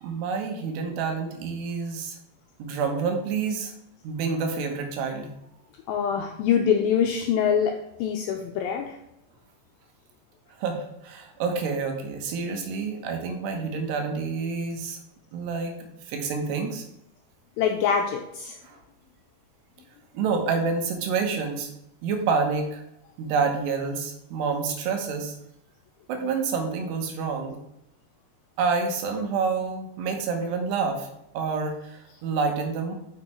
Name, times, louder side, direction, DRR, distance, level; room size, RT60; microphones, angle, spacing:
voice 1, 0.0-2.2 2.6-3.7 4.0-5.3 10.6-15.0 15.3-16.8 18.6-18.8 20.1-21.7 22.0-22.8 23.2-25.4 26.1-27.6 28.6-31.1 31.3-32.9, right 5 dB, 80° right, 4 dB, 3.3 m, -28 dB
voice 2, 5.9-9.0 17.6-18.6, left 7 dB, 90° left, 3 dB, 2.1 m, -24 dB
6.9 x 6.4 x 4.4 m, 0.82 s
omnidirectional pair, 4.8 m